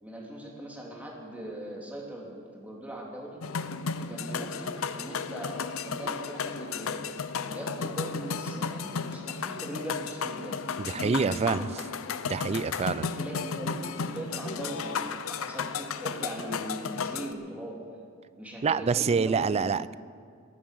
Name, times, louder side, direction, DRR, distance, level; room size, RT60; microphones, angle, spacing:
voice 1, 0.0-3.4 3.9-7.1 7.4-10.6 10.9-11.8 12.8-17.8 18.4-19.7, right 1 dB, 5° right, -3 dB, 2.6 m, -40 dB
sound 1, 3.4-17.3, left 5 dB, 75° left, 0.6 m, -34 dB
voice 2, 10.8-11.7 12.2-13.1 18.6-19.9, right 5 dB, 30° right, 18 dB, 0.3 m, -27 dB
18.5 x 8.6 x 7.8 m, 2.2 s
head